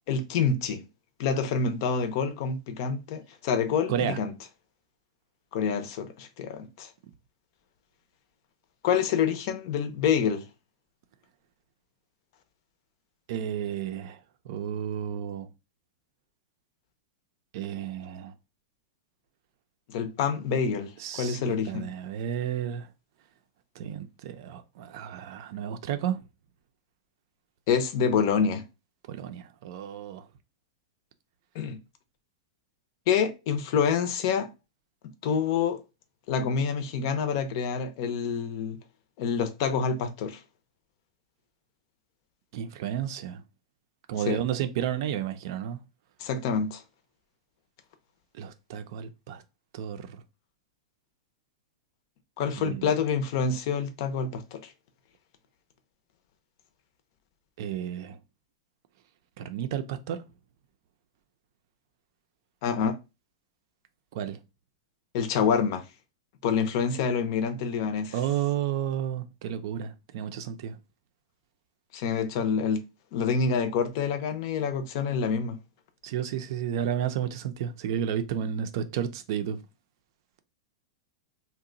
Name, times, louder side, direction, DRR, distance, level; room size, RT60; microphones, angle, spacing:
voice 1, 0.1-0.8 1.2-4.3 5.5-6.9 8.8-10.4 19.9-21.9 27.7-28.6 31.5-31.8 33.1-34.5 35.2-35.8 36.3-38.8 39.2-40.4 44.3-44.4 46.2-46.8 52.4-54.6 62.6-63.0 65.1-65.8 66.4-68.2 71.9-72.8 73.1-75.6, left 6 dB, 50° left, 0.6 m, -27 dB
voice 2, 13.3-14.2 14.5-15.5 17.5-18.3 21.0-22.9 23.8-26.2 29.1-30.2 42.5-43.4 44.1-45.8 48.4-49.4 49.7-50.2 52.6-52.8 57.6-58.2 59.4-60.2 64.1-64.4 68.1-70.8 76.0-79.6, right 9 dB, 55° right, 0.5 m, -32 dB
2.8 x 2.2 x 3.8 m
supercardioid pair, 150°, 3 cm